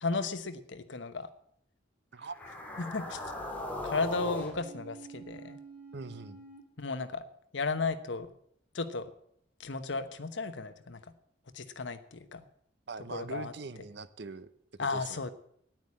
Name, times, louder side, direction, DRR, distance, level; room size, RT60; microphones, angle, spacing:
voice 1, 0.0-1.3 2.8-3.2 3.8-5.6 6.8-7.2 7.5-8.3 8.7-9.1 9.6-11.1 11.5-12.4 13.1-13.5 14.8-15.3, left 3 dB, 80° left, 11 dB, 1.1 m, -34 dB
sound 1, 2.2-6.6, left 1 dB, 10° left, 2.4 m, -41 dB
voice 2, 5.9-6.4 12.9-14.5 14.9-15.3, right 4 dB, 60° right, 14 dB, 0.7 m, -42 dB
9.9 x 9.1 x 8.6 m, 0.70 s
head